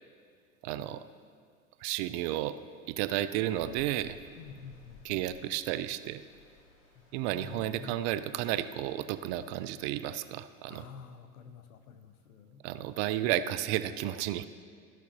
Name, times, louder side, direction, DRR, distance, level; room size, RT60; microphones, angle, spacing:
voice 1, 0.6-1.0 1.8-2.6 2.9-4.2 5.0-6.2 7.1-10.8 12.6-14.4, right 13 dB, 50° right, 13 dB, 0.5 m, -32 dB
Stream, 3.5-9.8, left 4 dB, 60° left, 2.3 m, -59 dB
voice 2, 4.4-5.2 6.9-7.0 7.3-8.0 10.7-12.6, left 6 dB, 80° left, 10 dB, 0.7 m, -49 dB
14.5 x 5.9 x 2.8 m, 2.2 s
hypercardioid pair, 90°, 43 cm